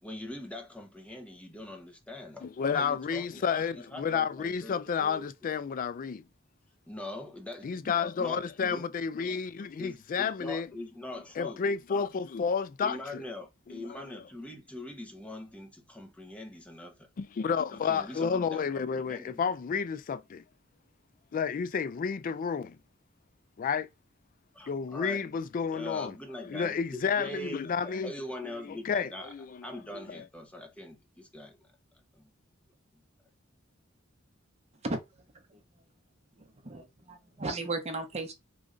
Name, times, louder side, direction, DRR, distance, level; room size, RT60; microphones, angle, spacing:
voice 1, 0.0-3.4 3.7-5.5 6.9-7.9 8.2-8.9 9.8-11.6 12.8-17.1 17.9-19.4 24.5-25.3 25.7-29.3 29.6-31.7 32.2-32.3, left 1 dB, 5° left, 0.8 m, -43 dB
voice 2, 2.4-6.2 7.6-10.7 11.4-13.2 13.7-14.0 17.2-20.4 21.3-22.8 23.6-23.9 24.7-28.1 28.6-29.8 30.1-30.2, left 6 dB, 40° left, 0.3 m, -31 dB
voice 3, 36.6-38.3, right 2 dB, 30° right, 0.8 m, -34 dB
3.2 x 2.5 x 3.7 m
head